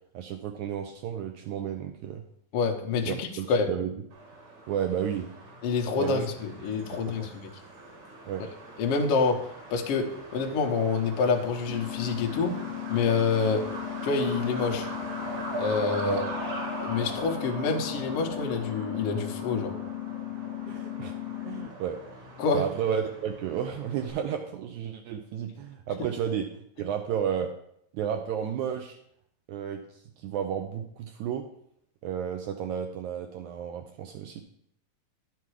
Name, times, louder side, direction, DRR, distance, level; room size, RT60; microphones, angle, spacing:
voice 1, 0.1-2.2 3.1-3.9 4.7-5.3 6.0-6.2 7.1-7.3 8.3-8.4 16.0-16.3 20.7-21.1 21.4-22.0 22.5-26.5 26.8-27.5 27.9-29.0 29.5-31.4 32.0-34.4, right 8 dB, 90° right, 5 dB, 1.7 m, -32 dB
voice 2, 2.5-3.7 5.6-7.5 8.8-12.5 12.9-13.6 14.0-14.9 15.6-16.2 16.8-19.7 22.4-22.6, left 4 dB, 70° left, 3 dB, 1.4 m, -27 dB
Truck, 4.1-24.1, right 2 dB, 60° right, 3.5 m, -41 dB
sound 1, 11.7-21.7, left 16 dB, 85° left, 2.4 m, -37 dB
11.0 x 5.9 x 4.8 m, 0.70 s
omnidirectional pair, 4.1 m